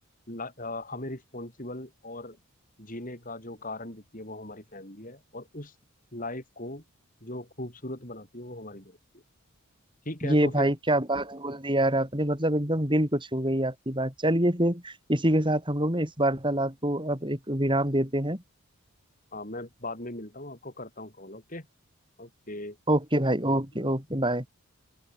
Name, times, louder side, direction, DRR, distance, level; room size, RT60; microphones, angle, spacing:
voice 1, 0.3-2.4 2.8-5.7 6.1-6.8 7.2-9.0 10.1-10.7 19.3-21.7 22.2-22.8 23.8-23.9, left 1 dB, 35° left, 5.5 m, -39 dB
voice 2, 10.2-18.4 22.9-24.4, right 1 dB, 20° right, 5.7 m, -26 dB
open air
head